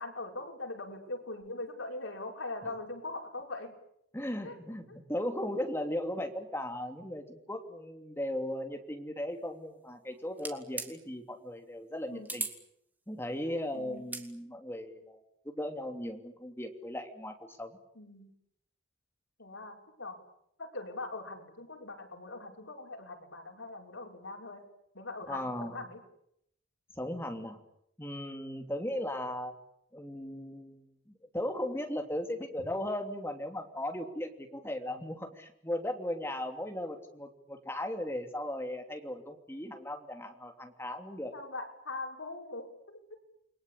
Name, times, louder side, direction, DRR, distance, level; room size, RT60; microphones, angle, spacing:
voice 1, 0.0-3.7 4.4-4.6 4.9-5.0 12.1-12.4 13.7-14.1 18.0-18.3 19.4-20.2 20.6-24.7 24.9-26.0 41.3-43.1, left 2 dB, 90° left, 2 dB, 5.8 m, -41 dB
voice 2, 4.1-12.5 13.1-17.8 25.3-25.8 27.0-27.6 28.0-29.5 29.9-41.3, left 1 dB, 10° left, 4 dB, 3.1 m, -37 dB
sound 1, 10.4-10.9 12.3-12.6 14.0-14.3, right 3 dB, 10° right, 2.7 m, -37 dB
29.5 x 22.5 x 8.6 m, 0.76 s
head